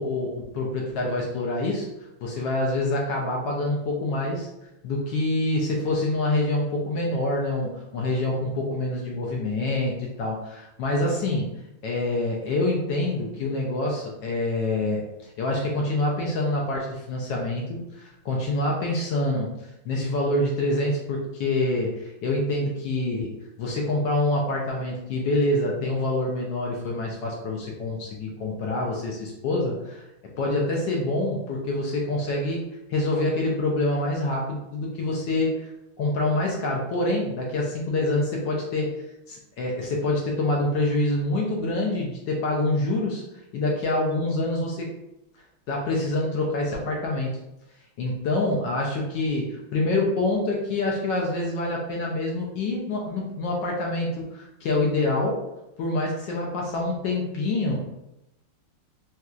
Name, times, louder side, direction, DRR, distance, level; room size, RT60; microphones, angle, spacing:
voice 1, 0.0-1.9 2.2-4.5 4.8-11.5 11.8-19.5 19.8-30.0 30.4-32.6 32.9-35.7 36.0-38.9 39.3-43.2 43.5-44.9 45.7-47.4 48.0-55.4 55.8-57.9, left 2 dB, 75° left, -1 dB, 1.0 m, -26 dB
4.2 x 2.3 x 2.4 m, 0.88 s
omnidirectional pair, 2.4 m